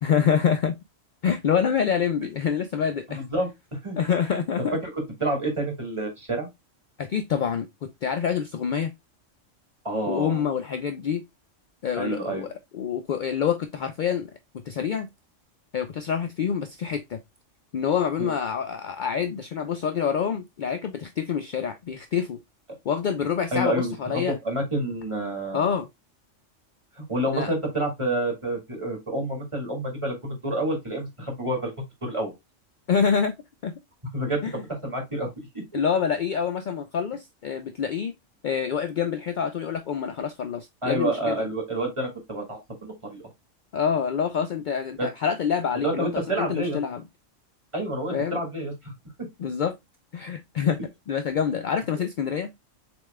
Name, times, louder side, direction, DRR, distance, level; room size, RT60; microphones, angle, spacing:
voice 1, 0.0-0.7 1.2-3.2 4.0-4.8 7.0-8.9 10.1-11.2 11.8-14.3 14.7-15.1 15.7-17.2 17.7-22.4 22.9-24.4 25.5-25.9 27.3-27.5 32.9-33.3 33.6-33.7 34.4-34.5 35.7-38.1 38.4-41.5 43.7-47.0 48.1-48.4 49.4-49.7 50.1-50.8 51.1-52.5, left 7 dB, 70° left, 0.4 m, -26 dB
voice 2, 3.1-4.0 4.8-6.5 9.8-10.4 12.0-12.5 18.2-18.3 23.5-25.7 27.0-31.7 32.0-32.3 34.1-35.6 40.8-43.3 45.0-45.1 45.7-46.8 47.7-48.9, right 1 dB, 25° right, 1.9 m, -29 dB
7.0 x 3.3 x 2.2 m
omnidirectional pair, 1.3 m